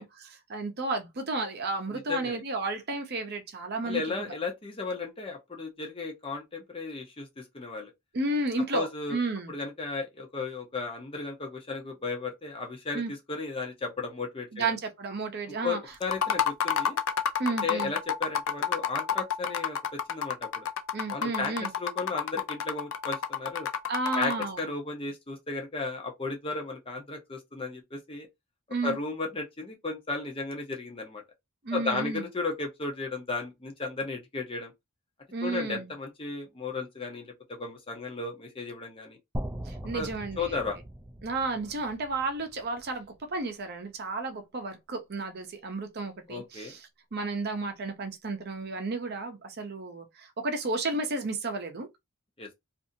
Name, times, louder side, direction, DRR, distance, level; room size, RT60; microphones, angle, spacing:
voice 1, 0.0-4.3 8.1-9.5 12.9-13.1 14.5-15.8 17.4-17.9 20.9-21.7 23.9-24.6 28.7-29.0 31.6-32.2 35.3-35.9 39.6-40.6 41.2-46.8 47.1-51.9, right 3 dB, 45° right, 0.7 m, -32 dB
voice 2, 1.9-2.4 3.8-7.9 8.7-9.2 9.5-13.0 13.3-14.7 15.6-17.0 17.5-19.8 20.1-20.7 21.1-21.5 21.8-23.7 24.1-28.3 28.8-31.2 31.7-34.7 35.4-39.2 39.9-40.1 40.4-40.8 46.3-46.7 52.4-52.5, left 3 dB, 25° left, 0.7 m, -34 dB
sound 1, 16.0-24.6, left 7 dB, 65° left, 0.4 m, -30 dB
sound 2, 39.3-43.4, equal, 10° right, 0.4 m, -40 dB
2.7 x 2.5 x 2.6 m
head